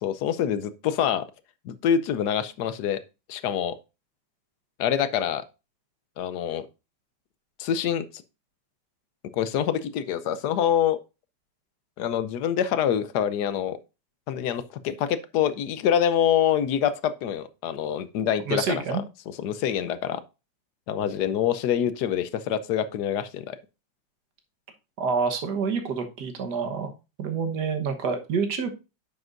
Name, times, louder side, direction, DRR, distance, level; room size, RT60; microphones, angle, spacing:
voice 1, 0.0-1.3 1.7-3.0 3.3-3.8 4.8-5.4 6.2-6.7 7.6-8.1 9.3-11.0 12.0-13.8 14.3-20.2 20.9-23.6, left 9 dB, 70° left, 1.2 m, -26 dB
voice 2, 18.5-19.0 25.0-26.9 27.2-28.7, right 5 dB, 65° right, 1.7 m, -27 dB
9.6 x 7.0 x 2.6 m
omnidirectional pair, 1.9 m